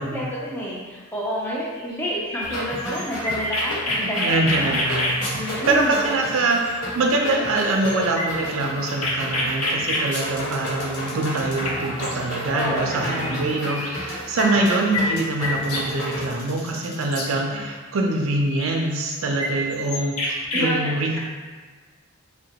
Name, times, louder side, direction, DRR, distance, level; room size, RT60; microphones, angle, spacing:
voice 1, 0.0-4.8 5.3-6.0 12.5-13.6 20.5-21.2, equal, 10° left, -6 dB, 0.4 m, -29 dB
sound 1, 2.3-5.5 6.8-6.9 7.1-7.4 7.6-12.1 13.1-13.4 13.6-17.3 18.4-20.7, left 1 dB, 90° left, 0.6 m, -28 dB
sound 2, 2.4-16.3, equal, 60° left, 1.0 m, -32 dB
voice 2, 4.2-21.2, right 2 dB, 65° right, 1 dB, 0.4 m, -24 dB
2.8 x 2.1 x 2.8 m, 1.5 s
head